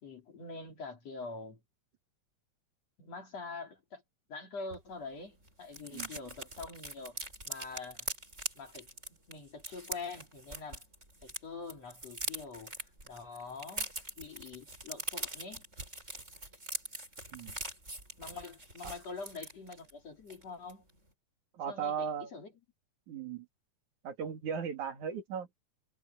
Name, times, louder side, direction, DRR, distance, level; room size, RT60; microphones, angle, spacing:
voice 1, 0.0-1.6 3.0-4.0 4.3-7.2 7.4-8.1 8.5-8.9 9.3-10.8 11.2-13.9 14.2-15.6 18.2-20.8 21.7-22.5, left 4 dB, 60° left, 4.9 m, -45 dB
sound 1, 4.7-4.8 5.1-5.2 5.4-11.4 11.7-19.9 20.3-20.4 20.7-21.0, right 1 dB, 20° right, 8.3 m, -42 dB
voice 2, 21.5-22.3 23.1-23.5 24.0-25.5, right 7 dB, 85° right, 3.8 m, -37 dB
omnidirectional pair, 3.3 m